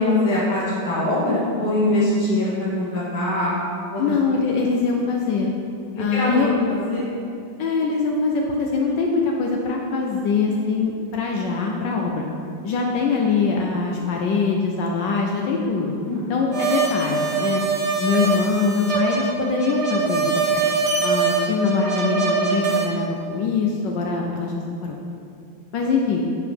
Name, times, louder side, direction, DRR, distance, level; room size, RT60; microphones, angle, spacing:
voice 1, 0.0-3.6 3.9-4.1 5.9-7.1 16.1-16.3, left 2 dB, 90° left, -11 dB, 2.2 m, -22 dB
voice 2, 4.0-5.5 6.0-6.5 7.6-12.2 12.6-15.9 16.3-17.6 18.0-20.6 21.0-24.5 24.8-25.0 25.7-26.2, left 4 dB, 70° left, 0 dB, 1.2 m, -23 dB
sound 1, 16.5-22.9, right 5 dB, 55° right, 1.6 m, -23 dB
7.1 x 4.7 x 5.2 m, 2.5 s
omnidirectional pair, 2.2 m